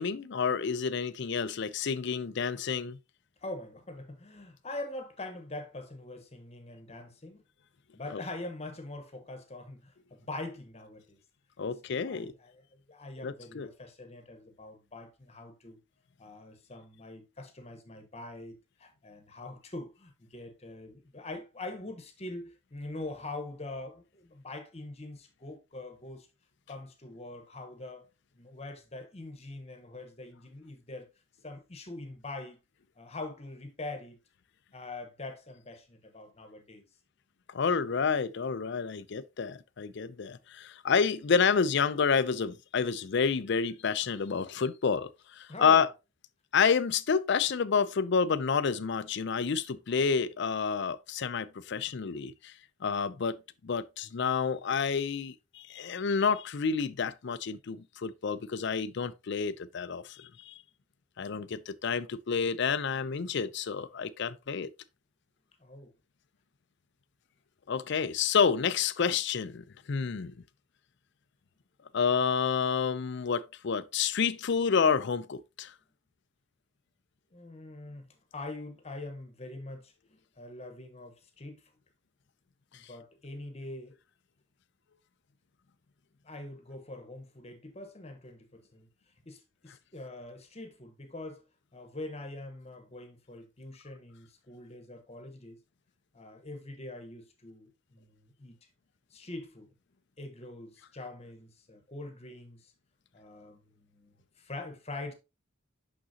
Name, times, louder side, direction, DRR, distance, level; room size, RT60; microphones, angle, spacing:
voice 1, 0.0-3.0 8.1-8.2 11.6-12.3 13.2-13.7 37.5-45.9 46.5-52.5 52.8-60.6 61.2-64.7 67.7-70.3 71.9-75.7, left 6 dB, 55° left, 0.5 m, -29 dB
voice 2, 3.4-7.4 7.9-11.2 11.9-15.8 16.2-26.3 26.7-28.1 28.3-31.1 31.4-32.6 33.0-34.2 34.7-36.8 45.5-45.9 65.6-65.9 77.3-81.7 82.7-83.9 86.2-88.9 89.3-91.4 91.7-95.6 96.1-98.6 99.1-99.7 100.2-102.7 103.1-105.1, left 2 dB, 30° left, 1.1 m, -43 dB
6.2 x 6.1 x 2.8 m
head